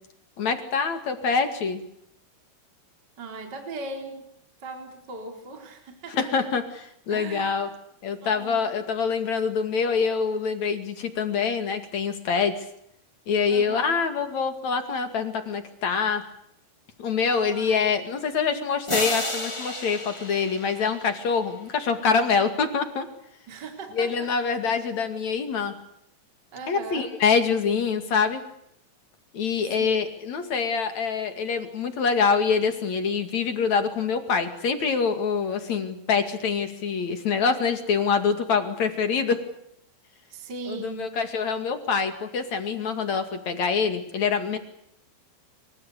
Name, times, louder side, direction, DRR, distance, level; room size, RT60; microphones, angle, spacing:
voice 1, 0.4-1.8 6.1-7.7 8.0-12.5 13.3-16.2 17.0-23.1 24.0-25.7 26.7-28.4 29.3-39.4 40.7-44.6, left 5 dB, 45° left, 8 dB, 2.7 m, -25 dB
voice 2, 3.2-4.3 4.6-6.5 7.1-7.7 8.2-8.8 13.5-14.0 17.4-18.0 23.5-24.3 26.5-27.1 29.7-30.0 40.3-41.2, right 3 dB, 25° right, 3 dB, 3.9 m, -39 dB
sound 1, 18.9-21.7, left 1 dB, 25° left, 0.6 m, -32 dB
27.0 x 25.0 x 6.7 m, 0.74 s
omnidirectional pair, 5.6 m